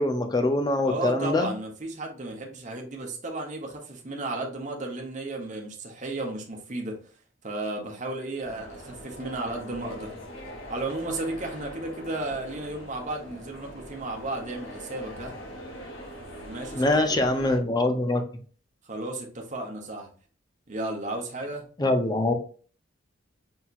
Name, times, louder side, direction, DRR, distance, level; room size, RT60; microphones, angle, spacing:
voice 1, 0.0-1.5 16.7-18.2 21.8-22.3, left 2 dB, 20° left, 5 dB, 0.6 m, -23 dB
voice 2, 0.8-7.0 7.4-10.1 10.7-15.3 16.4-17.2 18.8-20.1 20.7-21.6, right 2 dB, 40° right, 1 dB, 1.0 m, -34 dB
sound 1, 8.4-17.6, equal, 85° left, 1.7 m, -42 dB
5.6 x 2.9 x 2.4 m, 0.41 s
head